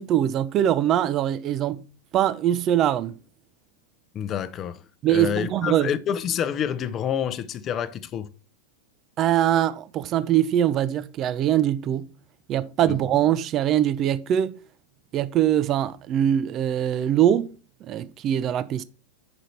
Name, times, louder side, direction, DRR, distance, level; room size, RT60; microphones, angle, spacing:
voice 1, 0.0-1.9 2.1-3.2 5.0-5.9 9.2-12.1 12.5-14.6 15.1-17.5 17.8-18.8, right 11 dB, 30° right, 0.5 m, -22 dB
voice 2, 4.1-4.8 5.1-8.3 12.9-13.0, left 9 dB, 30° left, 0.6 m, -28 dB
7.9 x 5.0 x 4.3 m
figure-of-eight pair, 90°, 0 cm